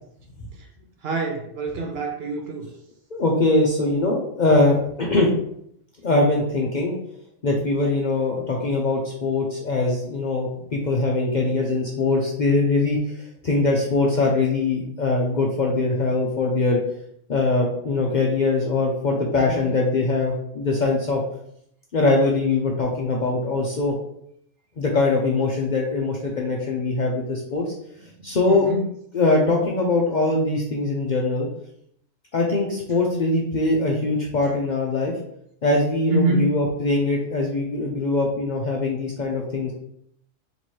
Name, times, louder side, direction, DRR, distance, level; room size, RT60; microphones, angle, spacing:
voice 1, 1.0-2.7 19.5-19.7 28.5-28.8 36.1-36.5, right 2 dB, 60° right, 2 dB, 0.8 m, -25 dB
voice 2, 3.1-5.3 6.0-6.9 7.4-16.8 17.3-21.2 21.9-23.9 24.8-27.6 28.2-28.7 29.1-31.5 32.3-35.1 35.6-39.7, left 2 dB, 50° left, -2 dB, 0.5 m, -22 dB
3.1 x 3.0 x 4.3 m, 0.71 s
omnidirectional pair, 1.3 m